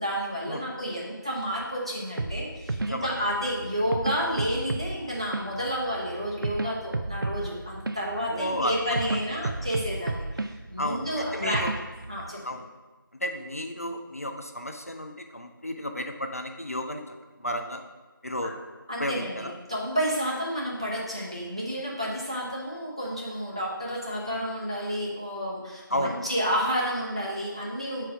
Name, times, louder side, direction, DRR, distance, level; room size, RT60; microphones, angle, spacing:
voice 1, 0.0-11.7 12.1-12.6 18.4-18.5 18.9-28.0, equal, 15° right, -5 dB, 0.6 m, -30 dB
sound 1, 2.2-12.3, right 2 dB, 70° right, 0.4 m, -33 dB
voice 2, 8.3-8.7 9.1-9.5 10.8-11.1 11.3-11.7 12.4-12.6 13.2-17.0 17.4-17.8 18.2-18.6 19.0-19.5 25.9-26.2, left 1 dB, 40° left, 5 dB, 0.4 m, -32 dB
4.6 x 4.5 x 5.9 m, 1.2 s
figure-of-eight pair, 170°, 12 cm